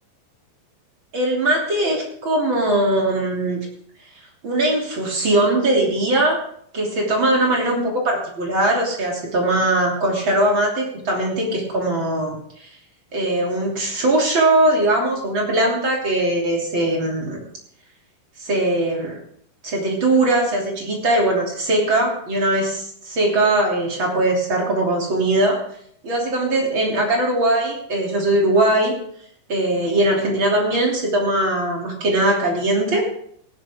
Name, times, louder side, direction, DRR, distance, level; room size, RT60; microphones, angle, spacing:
voice 1, 1.1-3.6 4.4-6.4 6.7-12.7 13.1-17.4 18.4-19.2 19.6-25.6 26.0-28.9 29.5-33.0, right 1 dB, 30° right, -1 dB, 3.2 m, -20 dB
18.5 x 11.0 x 3.7 m, 0.65 s
omnidirectional pair, 5.2 m